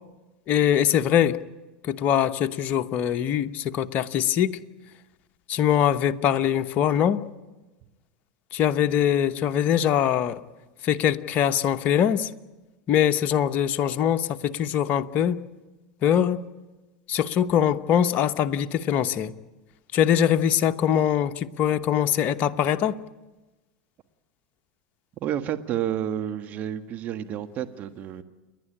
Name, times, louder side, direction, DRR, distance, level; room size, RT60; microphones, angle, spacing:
voice 1, 0.5-1.4 1.8-4.6 5.5-7.3 8.5-10.4 10.8-12.3 12.9-15.4 16.0-16.4 17.1-19.3 19.9-22.9, left 9 dB, 45° left, 9 dB, 1.0 m, -22 dB
voice 2, 25.2-28.2, right 10 dB, 45° right, 8 dB, 1.7 m, -30 dB
29.5 x 11.0 x 10.0 m, 1.1 s
hypercardioid pair, 90°, 4 cm